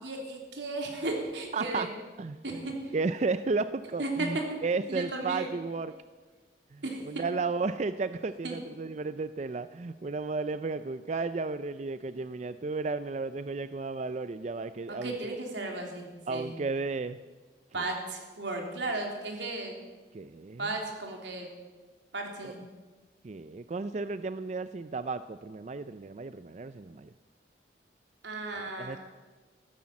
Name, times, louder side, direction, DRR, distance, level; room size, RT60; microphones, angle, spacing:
voice 1, 0.0-1.9 2.4-2.9 4.0-4.3 4.9-5.5 6.8-7.0 8.4-8.6 14.9-16.5 17.7-19.8 20.6-21.5 22.1-22.6 28.2-29.0, right 2 dB, 85° right, 1 dB, 3.4 m, -35 dB
voice 2, 1.5-1.9 2.2-2.6 2.9-5.9 6.7-15.4 16.3-17.2 17.7-17.9 20.1-20.7 22.4-22.6 23.2-27.1 28.5-29.0, right 3 dB, 40° right, 12 dB, 0.4 m, -33 dB
14.5 x 13.0 x 7.5 m, 1.3 s
head